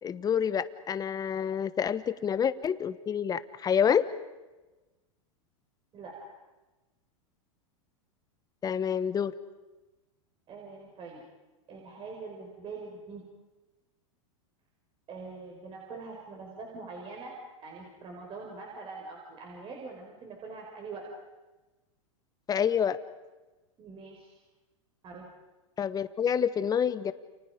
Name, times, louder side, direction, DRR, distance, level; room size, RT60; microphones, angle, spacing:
voice 1, 0.0-4.0 8.6-9.3 22.5-23.0 25.8-27.1, left 8 dB, 20° left, 14 dB, 1.2 m, -28 dB
voice 2, 10.5-11.2 11.7-13.3 15.1-17.3 17.6-21.1 23.8-24.3 25.0-25.3, right 4 dB, 30° right, 0 dB, 5.5 m, -43 dB
30.0 x 29.5 x 5.3 m, 1.1 s
hypercardioid pair, 120°, 17 cm